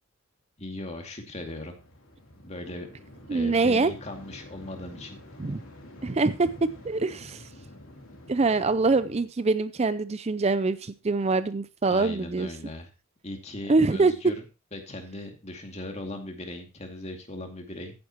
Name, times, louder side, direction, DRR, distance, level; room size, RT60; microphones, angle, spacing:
voice 1, 0.6-1.8 2.4-2.9 3.3-5.2 11.9-12.9 13.2-14.4 14.7-17.9, left 1 dB, 30° left, 4 dB, 2.3 m, -38 dB
sound 1, 1.3-9.2, left 1 dB, 65° left, 3.1 m, -48 dB
voice 2, 3.3-3.9 5.4-5.6 6.0-6.5 6.8-7.5 8.3-12.5 13.7-14.1, right 3 dB, 30° right, 13 dB, 0.4 m, -24 dB
14.5 x 9.5 x 3.0 m, 0.29 s
head